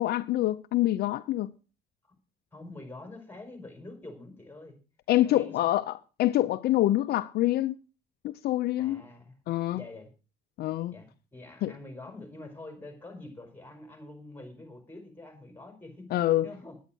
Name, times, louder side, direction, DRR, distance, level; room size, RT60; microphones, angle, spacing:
voice 1, 0.0-1.5 5.1-7.7 8.2-9.0 9.5-9.8 10.6-10.9 11.6-11.7 16.1-16.5, left 15 dB, 70° left, 0.6 m, -26 dB
voice 2, 2.5-4.8 5.2-5.7 8.8-9.4 9.7-10.1 10.9-16.1 16.4-16.8, left 2 dB, 10° left, 4.6 m, -46 dB
10.0 x 9.6 x 6.2 m
cardioid pair, 110°, 17 cm